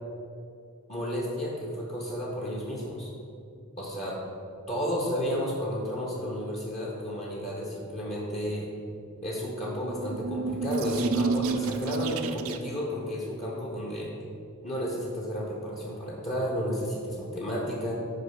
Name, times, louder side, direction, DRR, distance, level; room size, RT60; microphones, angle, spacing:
voice 1, 0.9-3.1 3.8-4.2 4.7-8.7 9.2-14.1 14.6-17.9, equal, 35° left, -4 dB, 1.0 m, -32 dB
sound 1, 9.7-12.9, right 4 dB, 75° right, 0.4 m, -30 dB
6.5 x 4.7 x 5.7 m, 2.5 s
head